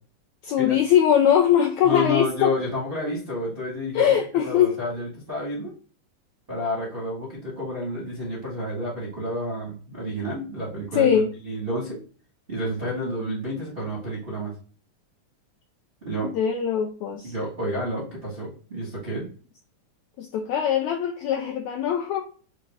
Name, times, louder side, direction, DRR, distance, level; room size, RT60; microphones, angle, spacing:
voice 1, 0.4-2.5 3.9-4.7 10.9-11.3 16.2-17.3 20.2-22.3, left 9 dB, 90° left, 3 dB, 1.6 m, -21 dB
voice 2, 1.8-4.1 4.4-5.7 6.5-11.1 11.4-12.0 12.5-14.5 16.0-16.3 17.2-19.3, left 1 dB, 65° right, -5 dB, 0.5 m, -30 dB
6.3 x 2.2 x 3.3 m, 0.41 s
omnidirectional pair, 3.8 m